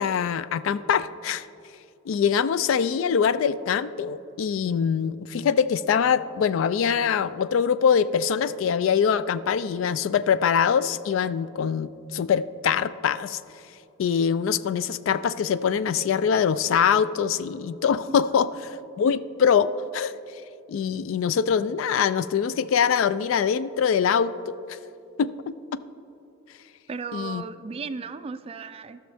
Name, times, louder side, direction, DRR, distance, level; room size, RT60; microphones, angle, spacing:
voice 1, 0.0-1.5 2.1-13.4 14.0-20.1 20.7-24.6 25.2-25.8 27.1-27.4, left 7 dB, 70° left, 15 dB, 0.3 m, -23 dB
voice 2, 26.9-29.0, right 5 dB, 30° right, 11 dB, 0.3 m, -35 dB
14.5 x 6.3 x 3.4 m, 2.7 s
head